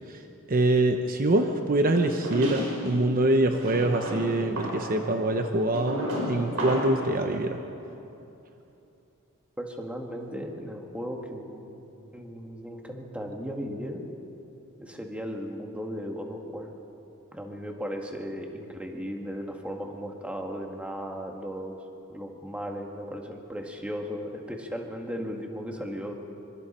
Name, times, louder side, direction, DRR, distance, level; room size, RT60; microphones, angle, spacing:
voice 1, 0.5-7.6, right 2 dB, 40° right, 5 dB, 0.9 m, -24 dB
sound 1, 1.9-2.9 3.6-7.0, equal, 75° right, 5.8 m, -32 dB
voice 2, 9.6-11.8 12.1-14.0 14.8-16.7 17.3-21.8 22.1-26.2, equal, 5° right, 1 dB, 1.8 m, -36 dB
25.0 x 24.5 x 4.4 m, 2.9 s
head